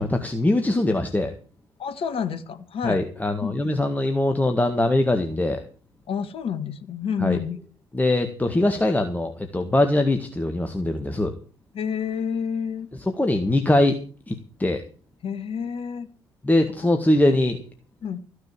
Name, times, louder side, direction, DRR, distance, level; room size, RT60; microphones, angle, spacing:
voice 1, 0.0-1.3 2.8-5.6 7.2-7.4 7.9-11.3 13.1-14.0 14.3-14.8 16.4-17.6, left 1 dB, 15° left, 5 dB, 1.9 m, -22 dB
voice 2, 1.8-3.0 3.4-3.5 6.1-7.6 11.7-12.9 15.2-16.1 18.0-18.2, left 7 dB, 50° left, 11 dB, 1.6 m, -29 dB
14.5 x 6.6 x 8.6 m, 0.39 s
figure-of-eight pair, 50°, 12 cm